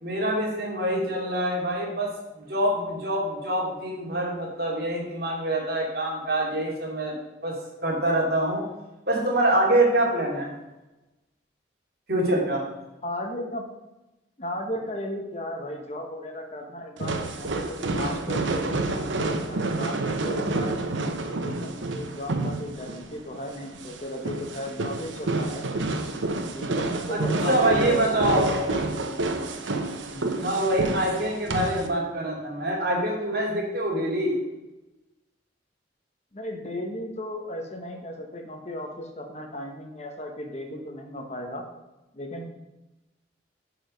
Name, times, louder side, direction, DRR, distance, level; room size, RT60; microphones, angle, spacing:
voice 1, 0.0-2.1 2.4-7.2 7.4-7.5 7.8-8.6 9.1-10.5 12.1-12.6 27.1-28.6 30.4-34.4, right 1 dB, 55° right, -2 dB, 2.5 m, -25 dB
voice 2, 13.0-13.6 14.4-20.8 21.4-25.6 26.4-29.6 30.1-30.3 36.3-41.6 42.1-42.5, left 1 dB, 35° left, 3 dB, 1.1 m, -35 dB
sound 1, 17.0-31.9, right 2 dB, 90° right, 0.9 m, -29 dB
10.5 x 4.9 x 5.1 m, 1.0 s
head